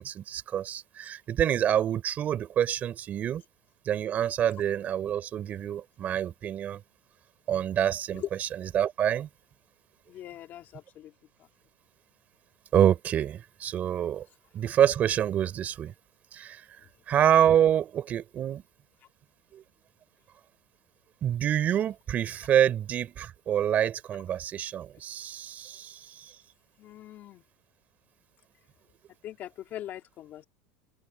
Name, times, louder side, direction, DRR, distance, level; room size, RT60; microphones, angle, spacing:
voice 1, 0.0-3.4 3.9-6.8 7.5-9.3 12.7-14.3 14.5-15.9 16.3-16.6 17.1-18.6 19.5-19.6 21.2-26.3, right 10 dB, 25° right, 4.1 m, -27 dB
voice 2, 10.1-11.1 26.8-27.4 29.2-30.4, left 12 dB, 30° left, 2.6 m, -40 dB
open air
supercardioid pair, 170°, 6 cm